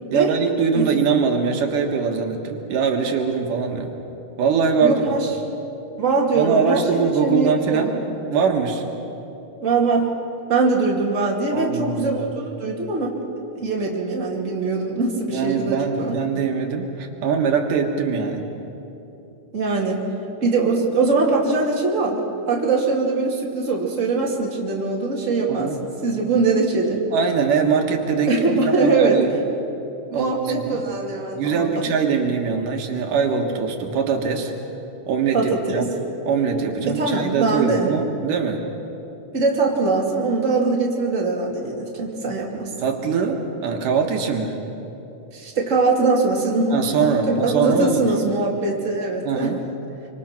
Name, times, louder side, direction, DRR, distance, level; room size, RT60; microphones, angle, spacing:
voice 1, 0.1-4.0 4.4-5.2 6.3-7.9 8.3-8.8 11.5-12.3 15.3-18.4 25.5-25.8 27.1-28.3 28.8-29.4 30.1-30.8 31.3-34.5 35.1-35.9 36.3-38.6 42.8-44.6 46.7-48.1 49.2-49.6, right 6 dB, 80° right, 3 dB, 3.1 m, -22 dB
voice 2, 4.8-5.3 6.0-8.0 9.6-10.2 10.5-13.2 13.5-16.1 19.5-20.0 20.4-22.2 22.5-27.0 28.3-29.2 30.1-31.9 35.3-35.9 36.9-37.9 39.3-42.7 45.3-49.5, right 3 dB, 25° right, -2 dB, 2.8 m, -22 dB
26.5 x 25.0 x 6.0 m, 3.0 s
omnidirectional pair, 3.7 m